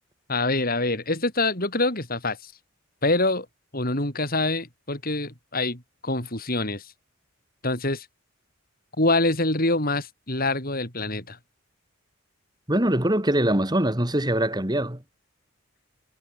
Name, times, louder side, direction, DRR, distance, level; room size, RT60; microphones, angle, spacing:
voice 1, 0.3-2.5 3.0-3.5 3.7-6.9 7.6-8.1 9.0-11.4, left 2 dB, 45° left, 7.8 m, -25 dB
voice 2, 12.7-15.0, right 1 dB, 20° right, 3.4 m, -23 dB
head